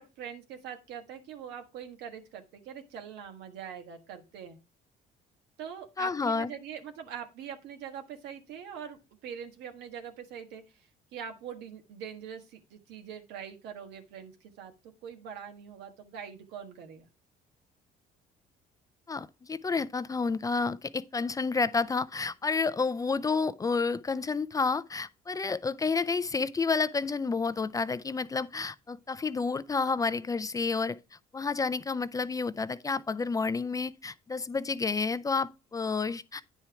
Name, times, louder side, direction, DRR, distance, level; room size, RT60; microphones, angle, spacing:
voice 1, 0.0-4.6 5.6-17.1, right 8 dB, 85° right, 1.5 m, -43 dB
voice 2, 6.0-6.5 19.1-31.0 31.3-36.4, left 4 dB, 20° left, 0.4 m, -30 dB
9.5 x 4.4 x 4.7 m
cardioid pair, 110°, 17 cm